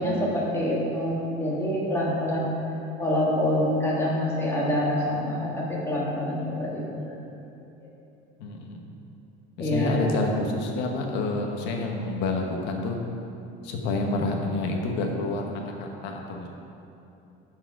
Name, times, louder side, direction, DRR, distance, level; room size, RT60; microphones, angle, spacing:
voice 1, 0.0-2.5 3.0-7.1 7.8-7.9 9.6-10.0, left 1 dB, 10° left, -5 dB, 1.5 m, -26 dB
voice 2, 8.4-8.8 9.6-13.0 13.6-16.5, left 2 dB, 55° left, 1 dB, 1.1 m, -28 dB
12.5 x 4.8 x 4.6 m, 2.8 s
cardioid pair, 180°, 21 cm